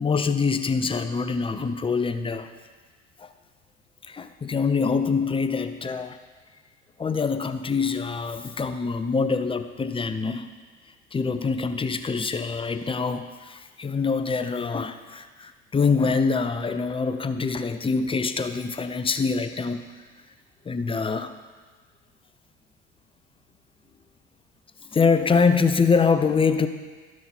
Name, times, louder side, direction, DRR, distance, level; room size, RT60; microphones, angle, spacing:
voice 1, 0.0-2.5 3.2-3.3 4.0-6.2 7.0-10.5 11.1-19.8 20.6-21.3 24.9-26.7, left 5 dB, 15° left, 9 dB, 0.6 m, -24 dB
12.0 x 6.3 x 4.4 m, 1.4 s
hypercardioid pair, 75°, 33 cm